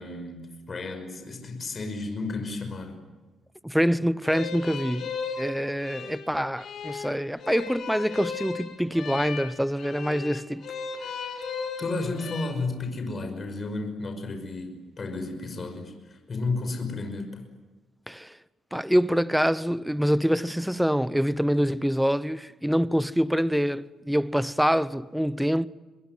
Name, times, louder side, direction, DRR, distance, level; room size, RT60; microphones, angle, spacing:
voice 1, 0.0-3.0 11.8-17.4, left 3 dB, 40° left, 5.8 m, -33 dB
voice 2, 3.6-5.1 5.4-10.7 18.1-18.4 18.7-25.7, equal, ahead, 0.8 m, -25 dB
sound 1, 4.2-12.5, left 5 dB, 65° left, 5.1 m, -36 dB
26.5 x 22.5 x 9.6 m
cardioid pair, 90°, 0 cm